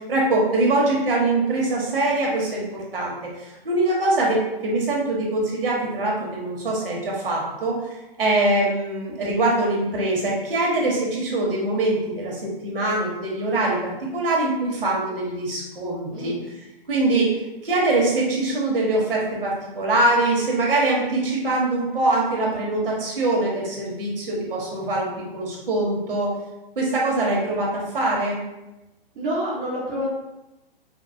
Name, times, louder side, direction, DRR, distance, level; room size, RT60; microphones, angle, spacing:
voice 1, 0.1-3.1 3.4-7.8 8.2-16.3 16.9-17.3 17.6-26.3 26.7-28.4, right 2 dB, 65° right, -3 dB, 1.3 m, -23 dB
voice 2, 29.1-30.1, equal, 10° right, -6 dB, 0.4 m, -28 dB
5.0 x 2.3 x 2.6 m, 0.98 s
figure-of-eight pair, 125°, 30 cm